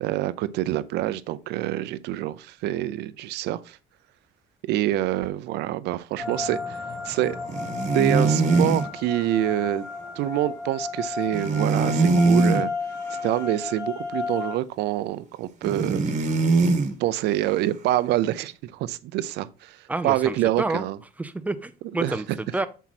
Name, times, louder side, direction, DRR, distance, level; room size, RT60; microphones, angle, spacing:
voice 1, 0.0-3.8 4.7-6.8 7.0-7.4 7.9-9.8 10.2-12.7 13.1-16.0 17.0-19.8 20.0-21.0 22.0-22.2, right 14 dB, 80° right, 0.5 m, -26 dB
sound 1, 6.2-14.5, left 4 dB, 20° left, 2.4 m, -33 dB
sound 2, 7.5-8.9 11.3-12.6 15.6-16.9, right 3 dB, 45° right, 1.4 m, -21 dB
voice 2, 19.9-20.8 21.2-22.7, right 2 dB, 10° right, 0.6 m, -29 dB
7.2 x 4.5 x 4.1 m
cardioid pair, 110°, 17 cm